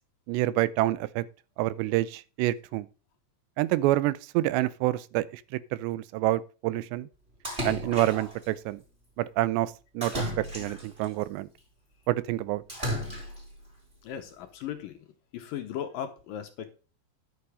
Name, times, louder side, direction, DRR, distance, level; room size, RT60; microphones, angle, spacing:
voice 1, 0.3-1.2 1.6-2.9 3.6-5.4 5.7-7.1 7.6-8.8 9.2-10.2 10.5-11.5 12.1-12.6, right 16 dB, 90° right, 2.9 m, -27 dB
Splash splatter, 7.4-8.4 10.0-11.1 12.7-13.5, equal, 15° right, 3.5 m, -34 dB
voice 2, 14.0-15.0 15.3-16.7, left 9 dB, 70° left, 2.3 m, -37 dB
11.0 x 7.0 x 4.9 m
omnidirectional pair, 4.9 m